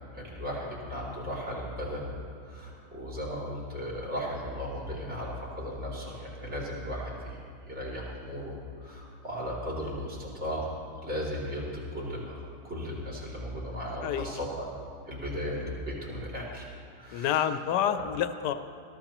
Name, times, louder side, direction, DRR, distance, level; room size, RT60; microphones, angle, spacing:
voice 1, 0.1-2.1 2.4-7.4 7.7-8.5 8.8-10.7 11.0-12.4 12.6-14.7 15.0-16.6 17.0-17.5 17.9-18.0, equal, 40° right, -4 dB, 3.2 m, -36 dB
voice 2, 14.0-14.4 17.1-18.5, left 10 dB, 85° left, 10 dB, 1.2 m, -28 dB
21.0 x 14.5 x 3.0 m, 2.5 s
omnidirectional pair, 1.8 m